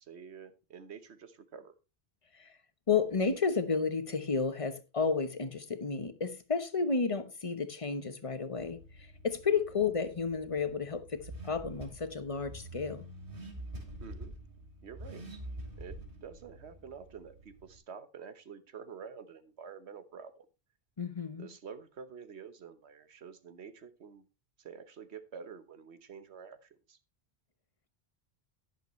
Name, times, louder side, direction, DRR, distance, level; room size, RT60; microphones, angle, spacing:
voice 1, 0.0-1.8 9.5-9.6 14.0-14.3 14.8-15.2 15.8-20.5 21.4-24.3 24.6-27.0, right 6 dB, 85° right, 1.3 m, -48 dB
voice 2, 2.9-13.0 21.0-21.5, left 5 dB, 30° left, 1.1 m, -32 dB
Car / Accelerating revving vroom, 8.6-17.8, right 1 dB, 55° right, 3.2 m, -47 dB
11.0 x 10.5 x 3.1 m
omnidirectional pair, 1.1 m